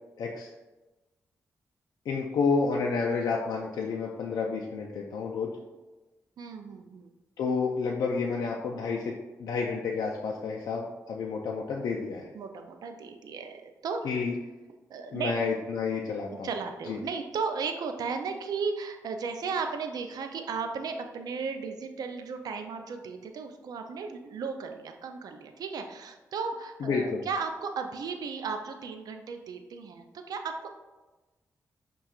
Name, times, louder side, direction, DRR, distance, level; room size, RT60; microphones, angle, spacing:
voice 1, 0.2-0.5 2.1-5.5 7.4-12.3 14.0-14.3 15.1-16.5 16.9-17.0 26.8-27.2, left 4 dB, 85° left, -1 dB, 0.4 m, -30 dB
voice 2, 6.4-7.1 12.3-14.0 14.9-15.4 16.3-30.7, right 5 dB, 80° right, 5 dB, 0.4 m, -35 dB
5.7 x 2.3 x 2.4 m, 1.1 s
cardioid pair, 70°, 7 cm